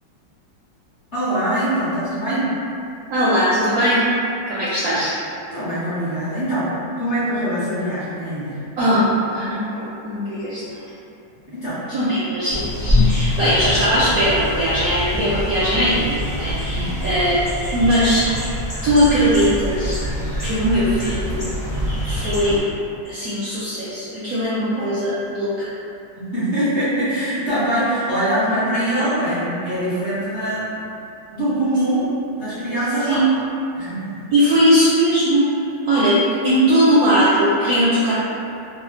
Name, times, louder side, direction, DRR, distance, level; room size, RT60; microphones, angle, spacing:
voice 1, 1.1-2.5 5.5-6.7 7.0-8.6 11.5-11.8 16.7-16.9 24.7-24.9 26.2-30.7 31.3-32.1 32.3-33.2 33.7-34.2, right 1 dB, 45° left, -13 dB, 1.0 m, -23 dB
voice 2, 3.1-4.0 4.5-5.1 8.8-9.0 9.3-10.8 11.9-17.4 17.7-18.2 18.8-20.0 20.4-21.4 22.1-22.6 23.0-25.7 33.1-33.3 34.3-35.5 35.8-36.1 36.4-38.1, equal, 70° right, -10 dB, 0.8 m, -19 dB
sound 1, 12.5-22.6, left 1 dB, 20° left, 0.5 m, -24 dB
3.1 x 2.1 x 3.1 m, 2.7 s
omnidirectional pair, 2.1 m